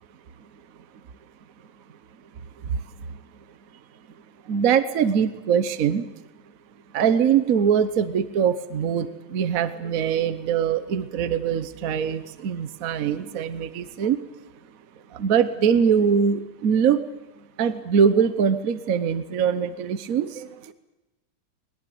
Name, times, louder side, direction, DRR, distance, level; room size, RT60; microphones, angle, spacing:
voice 1, 4.5-6.0 6.9-14.2 15.1-17.0 17.6-20.5, right 7 dB, 55° right, 11 dB, 1.3 m, -22 dB
21.5 x 20.5 x 7.8 m, 1.1 s
omnidirectional pair, 1.9 m